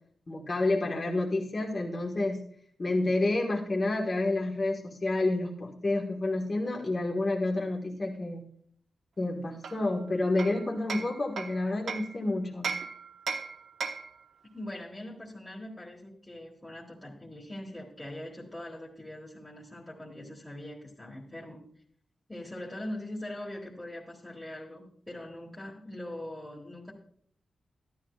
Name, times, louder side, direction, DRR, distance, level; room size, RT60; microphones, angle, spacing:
voice 1, 0.3-2.4 2.8-8.4 9.2-12.7, left 2 dB, 30° left, -1 dB, 1.4 m, -29 dB
Hammer, 9.6-12.2 12.6-14.2, right 5 dB, 70° right, 1.0 m, -37 dB
voice 2, 14.5-21.7 22.3-26.9, left 1 dB, 10° left, -4 dB, 1.5 m, -42 dB
14.0 x 11.5 x 2.4 m, 0.62 s
wide cardioid pair, 155°, 0 cm